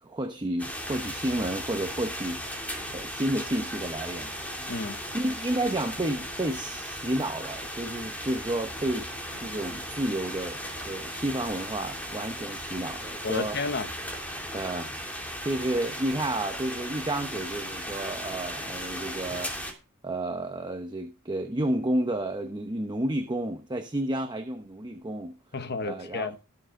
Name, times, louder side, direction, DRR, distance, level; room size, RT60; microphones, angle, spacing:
voice 1, 0.0-4.3 5.1-9.1 9.4-10.6 10.8-13.6 14.5-14.9 15.4-19.5 20.0-25.4 25.8-26.3, right 1 dB, 20° right, 0.9 m, -31 dB
sound 1, 0.6-19.7, equal, 5° left, 2.8 m, -36 dB
voice 2, 4.7-5.0 13.2-13.9 25.5-26.4, left 3 dB, 50° left, 1.0 m, -31 dB
19.0 x 6.8 x 3.7 m
head